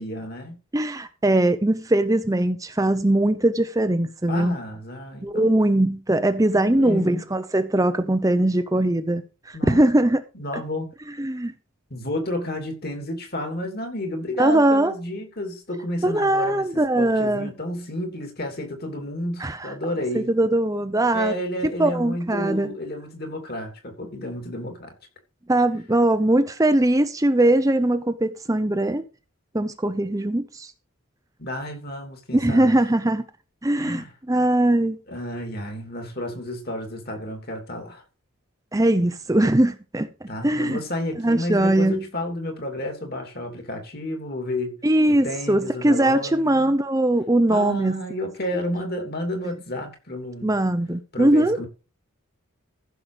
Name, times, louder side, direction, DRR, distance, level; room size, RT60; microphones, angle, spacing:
voice 1, 0.0-0.6 4.3-5.6 6.5-7.2 9.5-9.9 10.3-10.9 11.9-16.6 17.0-20.3 21.1-24.9 31.4-32.7 33.8-34.1 35.1-38.0 40.3-44.8 45.1-46.7 47.5-50.5 51.1-51.7, left 1 dB, 45° left, 3.1 m, -31 dB
voice 2, 0.7-4.6 5.2-10.2 11.2-11.5 14.4-14.9 16.0-17.5 19.4-19.7 20.1-21.3 21.8-22.7 25.5-29.0 29.5-30.7 32.3-33.2 33.6-35.0 38.7-40.1 40.4-40.8 41.2-42.0 44.8-48.0 50.4-51.6, right 1 dB, 15° right, 0.6 m, -21 dB
15.0 x 6.7 x 5.0 m
head